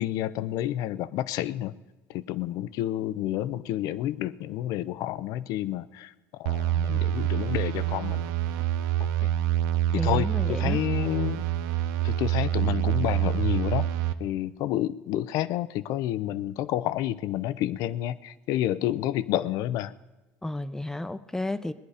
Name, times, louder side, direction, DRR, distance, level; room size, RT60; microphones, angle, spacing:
voice 1, 0.0-1.7 2.1-8.2 9.2-9.3 10.0-11.5 12.0-13.9 14.2-19.9, left 13 dB, 65° left, 16 dB, 0.6 m, -29 dB
sound 1, 6.5-14.1, right 12 dB, 80° right, 0.7 m, -26 dB
voice 2, 10.0-10.8 20.4-21.7, left 2 dB, 5° left, 12 dB, 0.7 m, -32 dB
20.0 x 10.5 x 4.9 m, 1.1 s
supercardioid pair, 100°, 7 cm